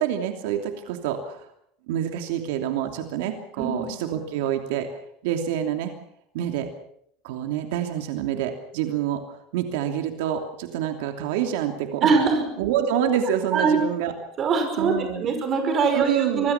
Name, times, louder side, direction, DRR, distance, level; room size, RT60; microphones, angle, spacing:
voice 1, 0.0-1.5 1.9-4.9 5.2-5.9 6.3-6.7 7.2-9.2 9.5-12.1 12.6-14.1 14.8-15.3 15.9-16.5, right 10 dB, 80° right, 5 dB, 2.9 m, -27 dB
voice 2, 3.6-3.9 12.0-12.4 13.5-13.8 14.4-16.5, right 5 dB, 30° right, 6 dB, 5.4 m, -22 dB
25.5 x 21.0 x 5.9 m, 0.71 s
cardioid pair, 165°, 0 cm